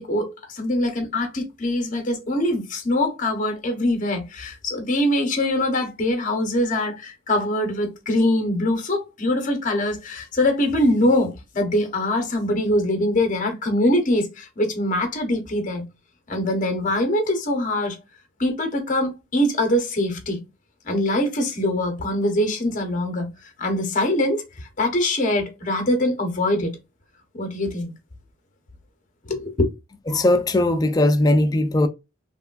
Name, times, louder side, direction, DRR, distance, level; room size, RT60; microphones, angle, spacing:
voice 1, 0.0-15.9 16.3-18.0 18.4-20.4 20.8-23.3 23.6-26.8 27.3-27.9 29.2-29.7, left 1 dB, 40° left, 0.8 m, -23 dB
voice 2, 30.1-31.9, left 1 dB, 20° left, 0.3 m, -19 dB
3.3 x 2.2 x 2.4 m
head